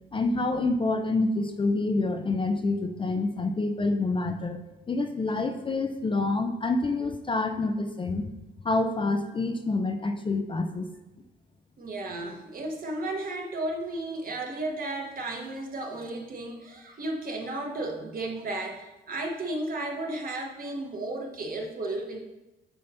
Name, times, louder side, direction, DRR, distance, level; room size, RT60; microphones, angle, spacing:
voice 1, 0.1-4.6 4.9-8.3 8.6-10.9, left 3 dB, 25° left, 5 dB, 0.5 m, -27 dB
voice 2, 11.8-22.2, right 2 dB, 45° right, 1 dB, 1.2 m, -34 dB
6.8 x 2.8 x 5.6 m, 0.99 s
cardioid pair, 90°, 20 cm